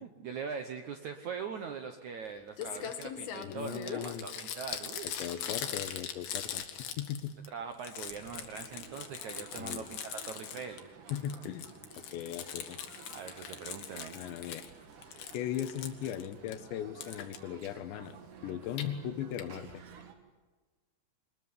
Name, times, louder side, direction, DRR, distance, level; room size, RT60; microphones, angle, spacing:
voice 1, 0.0-5.4 7.5-10.8 13.1-14.2, right 6 dB, 70° right, 7 dB, 1.8 m, -42 dB
Crumpling crinkling, 2.3-2.4 2.6-7.5 7.7-10.8 11.1-14.7 15.0-16.6 17.0-17.4 18.5-18.9 19.4-19.5 19.7-19.8 20.0-20.1, left 9 dB, 65° left, 3.4 m, -41 dB
voice 2, 3.4-4.3 5.2-7.4 9.6-9.9 11.1-11.7 12.0-12.8 14.2-14.7 15.3-18.2 18.4-19.8, left 10 dB, 85° left, 12 dB, 3.5 m, -38 dB
sound 1, 8.5-20.1, right 6 dB, 55° right, 3.1 m, -53 dB
23.5 x 20.5 x 9.7 m, 1.3 s
omnidirectional pair, 5.0 m